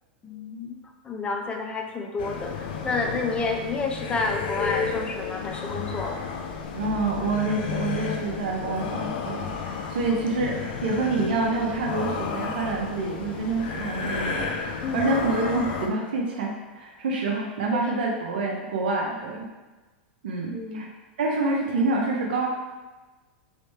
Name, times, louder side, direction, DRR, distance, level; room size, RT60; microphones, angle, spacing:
voice 1, 0.2-6.3 14.8-15.0 17.7-17.8 20.5-20.8, left 3 dB, 20° left, 3 dB, 0.5 m, -30 dB
sound 1, 2.2-15.9, left 5 dB, 70° left, 0.5 m, -32 dB
voice 2, 6.7-10.5 10.8-19.5 20.2-20.9 21.2-22.5, right 3 dB, 75° right, -1 dB, 0.7 m, -27 dB
3.2 x 3.1 x 3.1 m, 1.2 s
hypercardioid pair, 110°, 5 cm